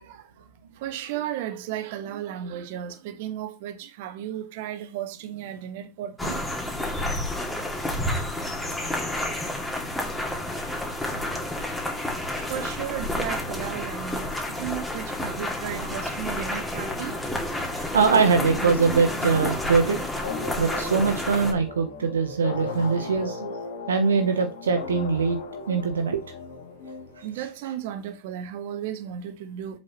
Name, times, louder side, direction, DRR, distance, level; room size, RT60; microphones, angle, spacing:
voice 1, 0.8-6.4 9.2-9.4 11.3-11.4 12.5-14.3 14.6-17.1 27.2-29.8, right 11 dB, 50° right, 1.2 m, -34 dB
sound 1, 6.2-21.5, left 1 dB, 5° left, 2.2 m, -30 dB
voice 2, 17.7-20.0 20.6-23.4 23.9-25.4 25.7-26.2, right 5 dB, 70° right, 0.9 m, -22 dB
sound 2, 18.1-27.6, left 4 dB, 60° left, 2.3 m, -36 dB
7.6 x 5.8 x 3.1 m
figure-of-eight pair, 90°, 0 cm